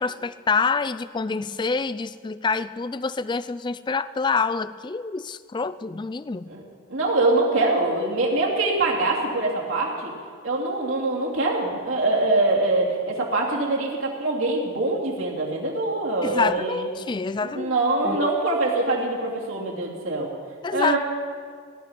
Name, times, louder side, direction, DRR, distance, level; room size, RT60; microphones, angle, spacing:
voice 1, 0.0-6.5 16.2-17.8 18.1-18.2 20.6-21.0, left 4 dB, 20° left, 15 dB, 0.3 m, -26 dB
voice 2, 6.9-10.1 10.4-16.9 17.4-20.3 20.7-21.0, right 2 dB, 65° right, -3 dB, 2.9 m, -24 dB
18.0 x 11.0 x 5.8 m, 2.1 s
head